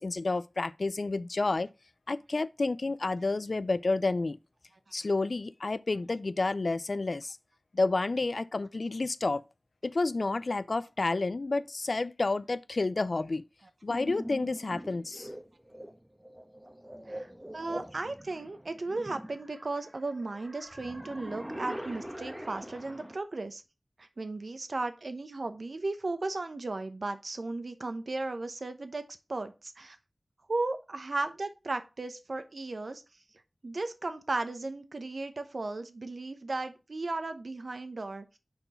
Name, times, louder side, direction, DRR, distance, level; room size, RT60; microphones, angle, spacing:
voice 1, 0.0-1.7 2.1-4.4 4.9-7.4 7.7-9.4 9.8-13.4 13.8-15.3, left 3 dB, 65° left, 0.4 m, -30 dB
sound 1, 13.9-23.2, equal, 10° right, 1.1 m, -43 dB
voice 2, 17.1-23.6 24.0-30.0 30.5-33.0 33.6-38.4, right 2 dB, 70° right, 0.9 m, -35 dB
6.0 x 4.5 x 5.2 m
cardioid pair, 40°, 0 cm